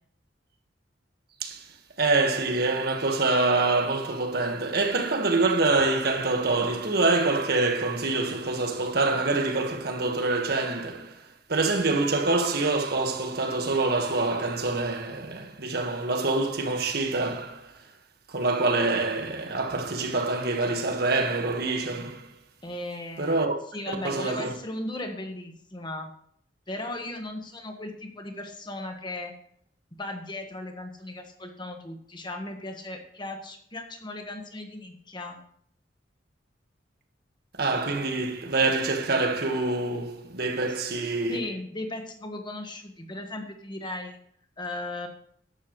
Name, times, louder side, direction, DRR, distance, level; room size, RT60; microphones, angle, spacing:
voice 1, 1.4-1.7 2.0-17.8 18.3-22.3 23.2-23.5 23.9-24.5 37.6-41.4, right 3 dB, 60° right, 1.6 m, -26 dB
voice 2, 22.6-23.5 23.7-26.1 26.7-29.3 29.9-35.4 41.3-44.2 44.6-45.1, left 1 dB, 25° left, 1.5 m, -37 dB
14.0 x 11.5 x 3.2 m
head